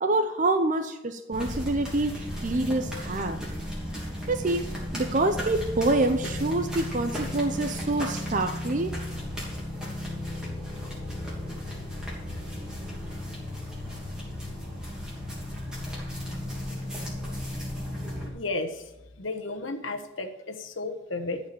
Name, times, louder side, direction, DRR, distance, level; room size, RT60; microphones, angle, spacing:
voice 1, 0.0-3.4 4.3-4.6 4.9-8.9, right 2 dB, 40° right, 7 dB, 0.6 m, -26 dB
sound 1, 1.3-18.3, left 1 dB, 5° right, 2.9 m, -35 dB
voice 2, 18.3-21.4, left 2 dB, 80° left, 5 dB, 1.3 m, -33 dB
13.0 x 4.9 x 8.6 m, 0.99 s
head